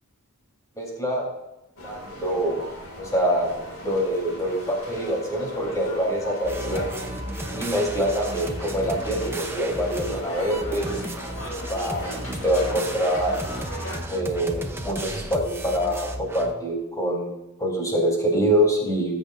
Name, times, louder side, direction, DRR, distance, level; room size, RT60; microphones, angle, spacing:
voice 1, 0.8-1.3 1.8-2.6 3.0-3.5 3.8-6.9 7.5-10.9 11.7-13.4 14.1-17.3 17.6-19.2, equal, 15° left, -2 dB, 3.7 m, -25 dB
sound 1, 1.8-14.0, equal, 70° left, 2.4 m, -37 dB
sound 2, 6.4-16.5, right 1 dB, 10° right, 0.8 m, -34 dB
19.0 x 8.2 x 2.6 m, 0.95 s
head